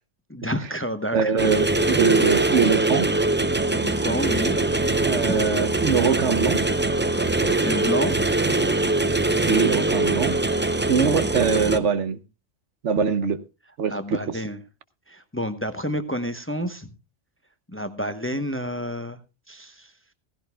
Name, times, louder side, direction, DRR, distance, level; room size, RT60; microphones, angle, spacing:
voice 1, 0.3-1.4 3.7-4.6 5.3-5.4 7.4-8.1 13.9-14.6 15.1-16.9 17.7-19.2 19.5-19.9, equal, 10° left, 0.8 m, -29 dB
voice 2, 1.1-3.1 5.0-6.6 9.4-10.4 10.9-12.2 12.8-13.4 13.8-14.2, right 6 dB, 75° right, 1.2 m, -22 dB
sound 1, 1.4-11.8, right 2 dB, 15° right, 0.3 m, -22 dB
16.5 x 15.5 x 2.3 m
omnidirectional pair, 1.2 m